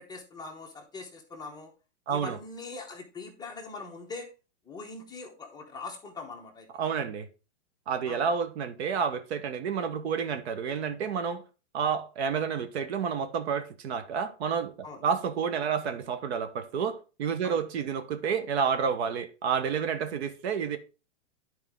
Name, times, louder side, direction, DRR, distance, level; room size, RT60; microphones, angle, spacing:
voice 1, 0.0-1.7 2.1-4.3 4.7-6.7 8.1-8.4 14.8-15.0 17.4-17.6, left 3 dB, 10° left, 1.0 m, -42 dB
voice 2, 2.1-2.4 6.7-7.3 7.9-11.4 11.7-14.7 15.0-20.8, right 6 dB, 55° right, 1.1 m, -30 dB
10.0 x 4.6 x 3.6 m
hypercardioid pair, 145°, 38 cm